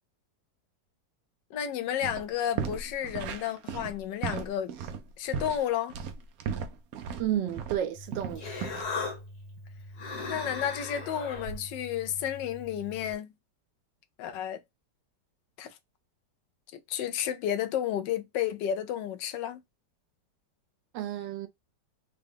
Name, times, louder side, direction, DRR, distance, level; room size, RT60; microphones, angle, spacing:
voice 1, 1.5-4.7 5.2-5.9 10.3-13.3 14.2-14.6 15.6-15.7 16.7-19.6, left 10 dB, 80° left, 1.3 m, -32 dB
sound 1, 2.0-2.2 2.5-7.8 8.1-8.8, right 7 dB, 65° right, 1.0 m, -35 dB
voice 2, 7.2-8.4 20.9-21.5, right 11 dB, 90° right, 1.3 m, -31 dB
Human voice, 7.9-13.1, left 3 dB, 65° left, 1.7 m, -39 dB
3.8 x 2.3 x 3.5 m
omnidirectional pair, 1.9 m